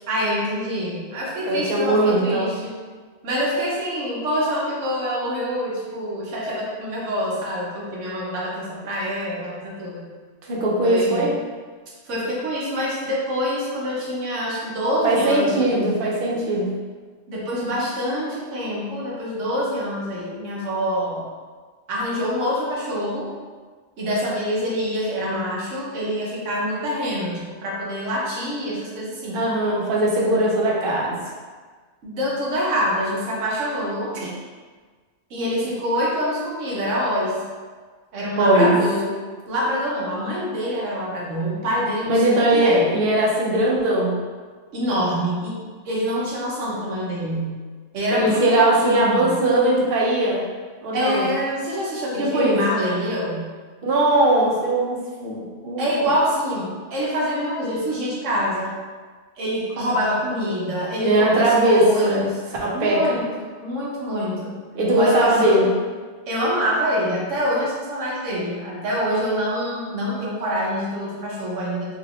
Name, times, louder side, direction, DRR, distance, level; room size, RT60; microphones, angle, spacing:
voice 1, 0.1-2.7 3.2-10.1 10.8-11.3 12.1-15.8 17.3-21.3 21.9-23.3 24.0-29.4 32.0-34.2 35.3-37.4 38.1-39.1 39.5-42.9 44.7-45.5 45.8-47.6 47.9-49.3 50.9-53.4 55.8-58.7 59.4-62.4 62.7-63.2 63.6-64.6 65.0-65.7 66.3-72.0, equal, 85° right, -5 dB, 1.2 m, -25 dB
voice 2, 1.5-2.5 10.5-11.3 15.0-16.7 29.3-31.2 34.1-34.3 38.4-38.8 42.1-44.2 48.1-50.4 50.8-51.3 52.2-52.6 53.8-55.9 61.0-62.2 62.6-63.2 64.7-65.7, right 1 dB, 55° right, -3 dB, 0.8 m, -20 dB
3.4 x 2.8 x 2.3 m, 1.5 s
omnidirectional pair, 1.3 m